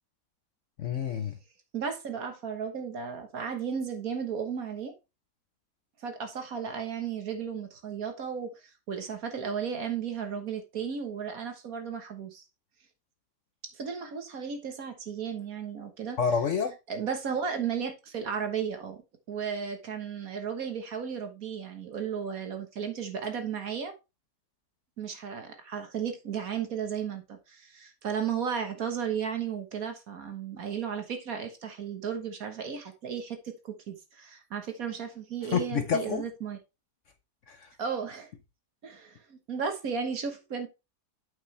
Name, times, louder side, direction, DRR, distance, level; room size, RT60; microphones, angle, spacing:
voice 1, 0.8-1.4 16.2-16.7 35.4-36.3 37.5-37.7, left 6 dB, 60° left, 0.9 m, -28 dB
voice 2, 1.7-4.9 6.0-8.5 8.9-12.4 13.7-16.2 16.9-19.0 19.3-23.9 25.0-36.6 37.8-38.3 38.8-40.7, right 7 dB, 60° right, 1.7 m, -34 dB
8.3 x 5.6 x 3.2 m
omnidirectional pair, 1.8 m